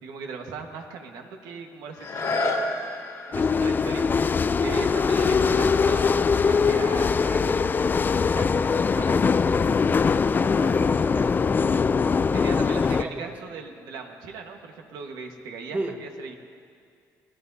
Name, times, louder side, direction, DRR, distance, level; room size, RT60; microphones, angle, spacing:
voice 1, 0.0-2.8 3.3-9.5 12.3-16.3, right 4 dB, 85° right, 3 dB, 1.5 m, -38 dB
sound 1, 1.9-7.6 8.1-8.2, left 2 dB, 60° left, 2.0 m, -33 dB
sound 2, 3.3-13.0, left 5 dB, 30° left, 0.4 m, -22 dB
Strum, 5.2-9.5, left 4 dB, 80° left, 2.1 m, -44 dB
voice 2, 10.4-11.6 12.8-13.3 15.7-16.0, right 2 dB, 25° right, 3 dB, 1.6 m, -35 dB
24.5 x 16.5 x 2.8 m, 2.2 s
cardioid pair, 95°, 7 cm